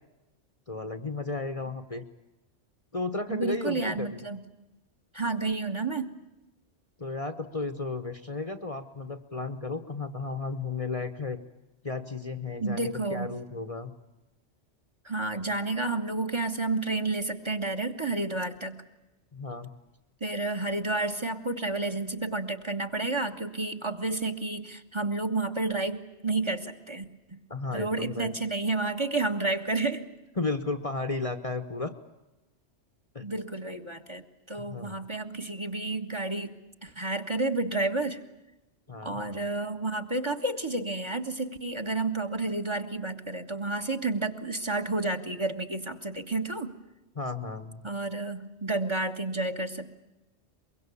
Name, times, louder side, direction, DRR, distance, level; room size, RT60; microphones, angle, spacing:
voice 1, 0.7-2.1 2.9-4.2 7.0-11.4 11.8-13.9 19.3-19.7 27.5-28.3 30.4-31.9 33.1-33.3 34.5-35.0 38.9-39.2 47.1-47.8, left 3 dB, 30° left, 10 dB, 1.1 m, -34 dB
voice 2, 3.3-4.4 5.1-6.2 12.6-13.3 15.0-18.8 20.2-27.4 27.7-30.1 33.2-36.5 36.8-38.2 39.0-46.7 47.8-49.9, right 2 dB, 25° right, 9 dB, 1.6 m, -30 dB
23.5 x 23.0 x 8.5 m, 1.0 s
omnidirectional pair, 1.2 m